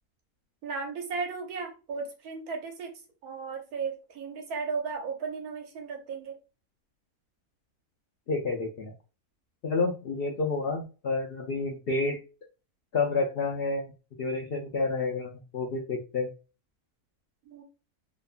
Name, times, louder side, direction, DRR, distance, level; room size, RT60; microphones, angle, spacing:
voice 1, 0.6-2.9 3.2-6.4 17.5-17.6, right 5 dB, 80° right, 3 dB, 1.2 m, -35 dB
voice 2, 8.3-8.9 9.6-12.2 12.9-13.9 14.2-16.3, left 3 dB, 80° left, 1 dB, 0.5 m, -29 dB
2.9 x 2.1 x 2.4 m, 0.32 s
omnidirectional pair, 1.6 m